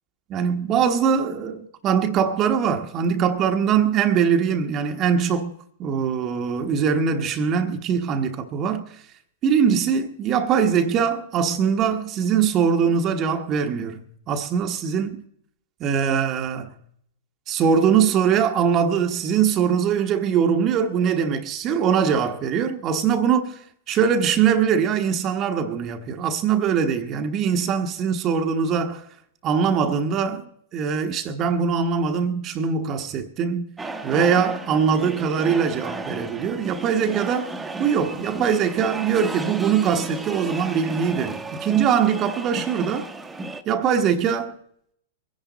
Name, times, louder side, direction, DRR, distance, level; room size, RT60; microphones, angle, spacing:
voice 1, 0.3-8.9 9.4-15.2 15.8-16.7 17.5-23.6 23.9-29.0 29.4-30.4 30.7-33.7 34.0-37.5 37.8-43.1 43.7-44.5, right 7 dB, 35° right, 1.2 m, -22 dB
sound 1, 33.8-43.6, right 3 dB, 10° right, 1.1 m, -34 dB
22.5 x 10.5 x 4.0 m
hypercardioid pair, 115°, 0 cm